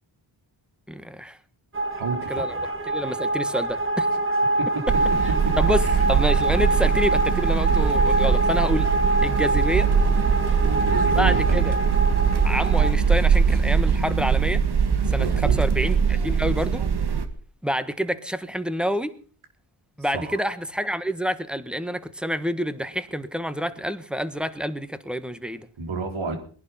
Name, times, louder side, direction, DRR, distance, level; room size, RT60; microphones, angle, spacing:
voice 1, 0.9-1.4 2.3-2.6 2.8-4.1 5.6-8.9 9.2-9.9 11.1-11.8 12.4-14.6 15.1-16.8 17.6-19.1 20.0-25.7, equal, ahead, 12 dB, 1.3 m, -28 dB
sound 1, 1.7-12.9, right 2 dB, 25° right, 2.1 m, -25 dB
voice 2, 2.0-2.7 4.6-4.8 5.4-5.5 5.8-6.0 10.6-11.6 15.1-15.6 20.1-20.4 25.8-26.4, right 4 dB, 75° right, 5 dB, 3.9 m, -30 dB
sound 2, 4.9-17.3, right 6 dB, 55° right, 1.8 m, -21 dB
21.0 x 11.0 x 5.7 m, 0.43 s
wide cardioid pair, 85°, 48 cm